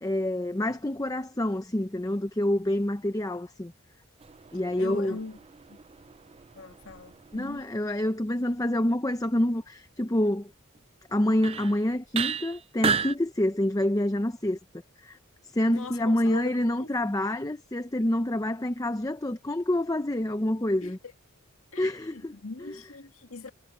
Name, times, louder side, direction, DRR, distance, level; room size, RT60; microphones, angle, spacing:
voice 1, 0.0-3.7 4.5-5.2 7.3-10.5 11.1-14.6 15.0-15.2 15.5-21.0 21.8-22.3 22.6-22.8, left 1 dB, 15° left, 0.7 m, -27 dB
sound 1, 4.2-7.7 10.8-10.9 11.4-11.8 12.1-13.2, right 6 dB, 30° right, 0.4 m, -33 dB
voice 2, 4.8-5.4 5.7-5.8 6.5-7.6 15.7-16.5 16.8-16.9 20.8-20.9 21.7-21.9 22.3-23.5, left 4 dB, 75° left, 2.0 m, -40 dB
head